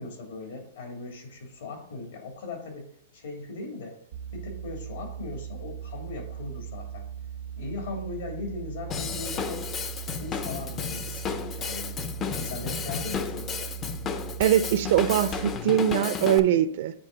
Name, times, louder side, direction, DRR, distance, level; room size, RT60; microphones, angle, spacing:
voice 1, 0.0-2.9 3.1-3.9 4.3-7.0 7.6-9.7 10.1-11.9 12.4-13.6, left 3 dB, 80° left, 1 dB, 2.6 m, -38 dB
sound 1, 4.1-15.6, right 9 dB, 85° right, 1.2 m, -39 dB
Drum kit / Drum, 8.9-16.4, left 7 dB, 25° left, 0.5 m, -33 dB
voice 2, 14.4-16.9, right 10 dB, 60° right, 12 dB, 0.5 m, -22 dB
8.5 x 3.5 x 4.0 m, 0.66 s
hypercardioid pair, 145°, 0 cm